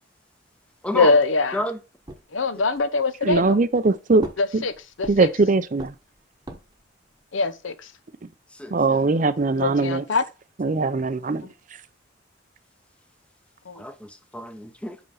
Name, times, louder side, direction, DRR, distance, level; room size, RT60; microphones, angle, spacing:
voice 1, 0.9-1.6 2.3-3.6 4.4-4.7 5.0-5.3 7.3-7.9 9.6-10.2 13.7-13.8, left 3 dB, 75° left, 0.7 m, -22 dB
sound 1, 2.1-2.9 3.3-3.9 4.2-5.4 5.8-6.9, right 1 dB, 20° right, 1.0 m, -39 dB
voice 2, 3.2-4.3 4.5-4.6 5.1-5.9 8.7-10.0 10.6-11.5, right 3 dB, 40° right, 0.5 m, -21 dB
voice 3, 8.5-9.0 13.7-15.0, left 1 dB, 5° left, 0.7 m, -30 dB
5.5 x 5.1 x 5.6 m
head